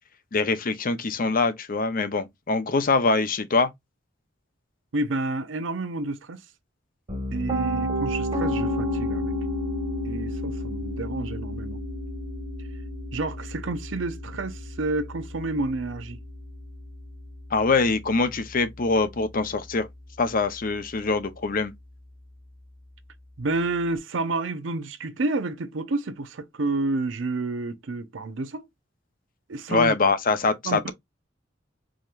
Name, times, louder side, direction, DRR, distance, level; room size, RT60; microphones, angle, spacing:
voice 1, 0.3-3.7 17.5-19.9 20.2-21.7 29.7-30.9, left 3 dB, 45° left, 0.7 m, -24 dB
voice 2, 4.9-6.4 7.3-9.3 10.0-11.8 13.1-16.2 23.4-28.6 29.5-29.9 30.6-30.9, right 2 dB, 75° right, 0.6 m, -29 dB
Piano, 7.1-19.0, left 1 dB, 30° right, 1.5 m, -32 dB
5.0 x 2.9 x 2.5 m
head